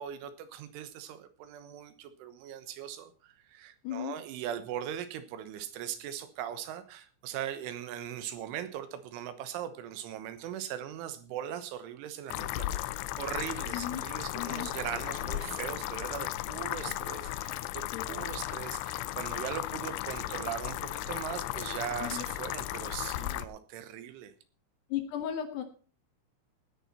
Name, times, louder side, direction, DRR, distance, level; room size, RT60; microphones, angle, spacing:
voice 1, 0.0-12.7 13.2-24.3, right 10 dB, 75° right, 11 dB, 3.5 m, -40 dB
voice 2, 3.8-4.1 13.7-14.1 14.3-14.7 17.9-18.0 22.0-22.3 24.9-25.6, left 10 dB, 70° left, 7 dB, 3.0 m, -35 dB
sound 1, 12.3-23.5, left 15 dB, 85° left, 2.4 m, -35 dB
17.0 x 9.9 x 4.2 m, 0.38 s
omnidirectional pair, 5.8 m